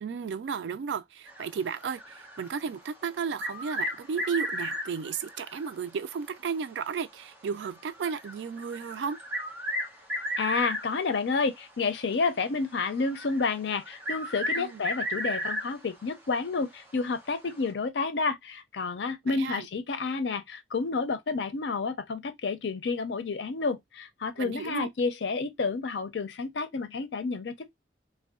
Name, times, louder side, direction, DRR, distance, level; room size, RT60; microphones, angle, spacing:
voice 1, 0.0-9.2 14.6-14.8 19.3-19.7 24.4-24.9, right 6 dB, 85° right, 0.3 m, -34 dB
sound 1, 1.3-2.8 3.2-5.9 6.1-6.2 6.9-7.0 7.6-11.2 11.9-12.1 12.7-15.9 16.3-16.4 17.4-17.7, equal, 10° right, 0.8 m, -34 dB
voice 2, 10.4-27.7, left 4 dB, 80° left, 0.5 m, -30 dB
2.6 x 2.2 x 2.3 m
head